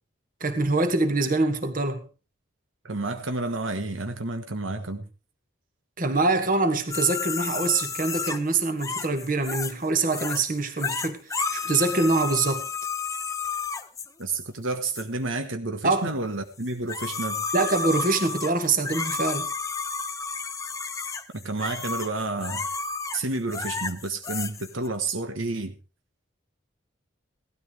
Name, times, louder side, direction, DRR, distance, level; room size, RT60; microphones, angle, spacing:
voice 1, 0.4-2.1 6.0-12.7 15.8-16.1 17.5-19.5, right 3 dB, 45° right, 1.8 m, -24 dB
voice 2, 2.8-5.1 14.2-17.4 21.3-22.7 23.1-25.7, right 2 dB, 85° right, 1.4 m, -30 dB
sound 1, 6.9-9.8 10.1-10.4 10.8-14.1 14.9-15.0 16.6-24.9, left 4 dB, 15° left, 0.7 m, -31 dB
17.0 x 13.0 x 3.4 m
head